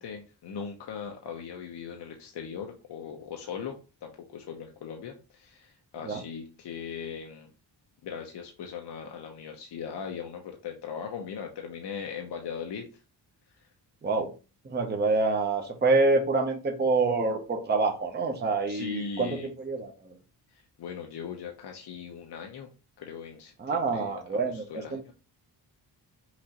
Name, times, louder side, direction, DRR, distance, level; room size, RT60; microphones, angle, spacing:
voice 1, 0.0-7.5 8.0-12.9 18.7-19.5 20.5-22.7 23.0-25.1, left 7 dB, 70° left, 2 dB, 0.8 m, -39 dB
voice 2, 14.6-20.1 23.6-25.0, right 3 dB, 25° right, 4 dB, 0.7 m, -27 dB
6.0 x 2.5 x 2.9 m, 0.32 s
wide cardioid pair, 120°, 42 cm